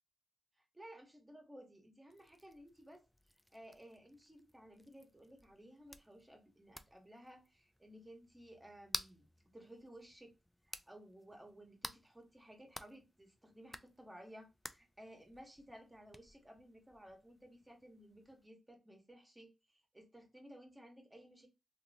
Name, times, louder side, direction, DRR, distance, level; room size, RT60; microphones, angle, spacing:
voice 1, 0.6-3.1 3.5-9.2 9.5-10.3 10.6-21.5, equal, 15° right, 1.1 m, -57 dB
sound 1, 2.1-18.5, left 1 dB, 10° left, 0.3 m, -53 dB
2.9 x 2.6 x 2.7 m
cardioid pair, 50°, 0 cm